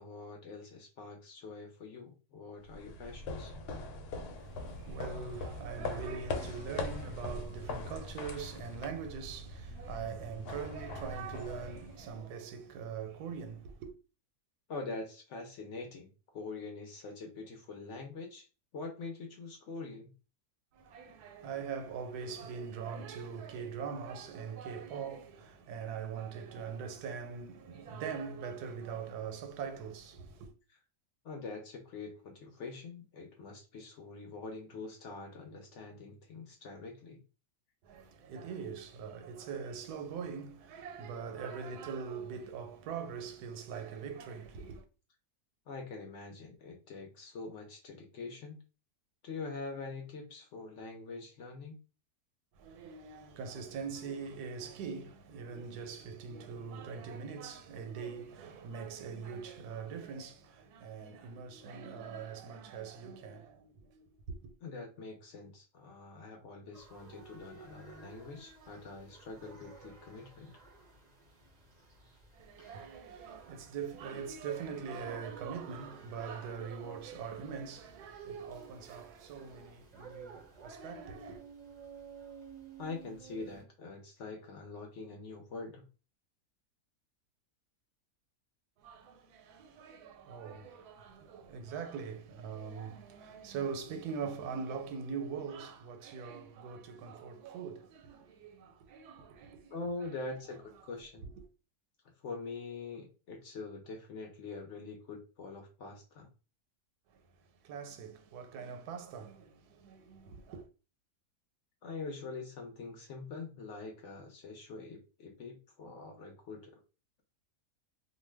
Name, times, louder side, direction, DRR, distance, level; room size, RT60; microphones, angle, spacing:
voice 1, 0.0-3.5 14.7-18.5 18.7-20.1 31.2-37.2 45.7-48.6 49.2-51.8 64.6-70.5 82.8-85.8 99.7-101.3 102.2-106.3 111.8-116.7, left 3 dB, 65° left, 0.8 m, -44 dB
sound 1, 2.6-12.3, left 2 dB, 90° left, 1.1 m, -41 dB
voice 2, 4.4-13.9 20.7-30.5 37.8-44.8 52.5-64.5 72.3-81.4 88.8-100.1 107.1-107.2 107.6-110.7, right 6 dB, 90° right, 1.1 m, -42 dB
sound 2, 66.7-83.6, right 5 dB, 55° right, 0.4 m, -54 dB
2.5 x 2.2 x 3.2 m
omnidirectional pair, 1.6 m